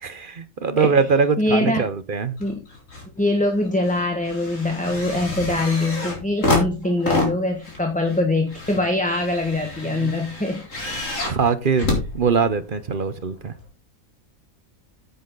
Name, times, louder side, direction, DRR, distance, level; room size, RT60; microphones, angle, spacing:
voice 1, 0.0-2.4 9.8-10.2 11.3-13.5, right 5 dB, 45° right, 12 dB, 0.9 m, -22 dB
voice 2, 1.4-1.9 2.4-2.6 3.2-10.7, left 2 dB, 5° left, 3 dB, 1.4 m, -23 dB
sound 1, 2.4-3.1 3.4-12.8 13.6-13.7, left 2 dB, 60° left, 4.0 m, -28 dB
9.5 x 8.4 x 3.9 m, 0.28 s
omnidirectional pair, 1.5 m